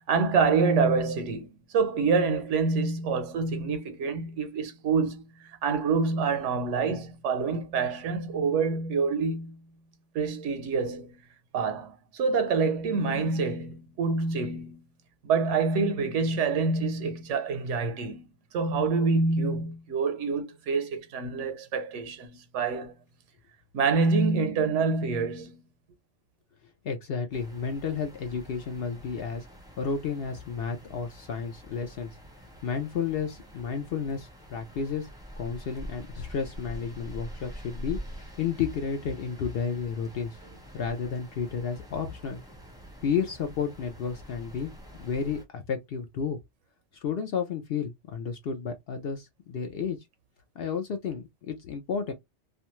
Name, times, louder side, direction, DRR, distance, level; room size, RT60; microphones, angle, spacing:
voice 1, 0.0-1.5 1.7-9.6 10.1-11.2 11.5-14.8 15.2-18.3 18.5-23.0 23.7-25.6, right 4 dB, 85° right, 1.0 m, -26 dB
voice 2, 26.8-29.5 29.8-32.2 32.6-35.1 35.4-40.4 40.7-42.4 43.0-44.7 45.0-46.4 46.9-50.0 50.6-52.1, left 6 dB, 60° left, 0.7 m, -32 dB
sound 1, 27.3-45.4, equal, 5° right, 0.6 m, -46 dB
2.5 x 2.2 x 2.9 m
omnidirectional pair, 1.2 m